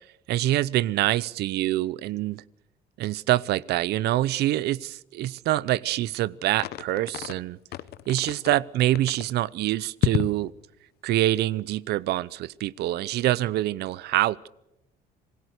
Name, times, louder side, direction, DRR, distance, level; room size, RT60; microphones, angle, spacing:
voice 1, 0.3-2.4 3.0-7.6 8.1-10.5 11.0-14.5, right 15 dB, 75° right, 22 dB, 0.7 m, -25 dB
sound 1, 6.6-7.4 7.7-8.6 9.0-9.3 10.0-10.4, left 13 dB, 70° left, 0.9 m, -29 dB
27.0 x 17.0 x 6.6 m, 0.87 s
cardioid pair, 110°, 17 cm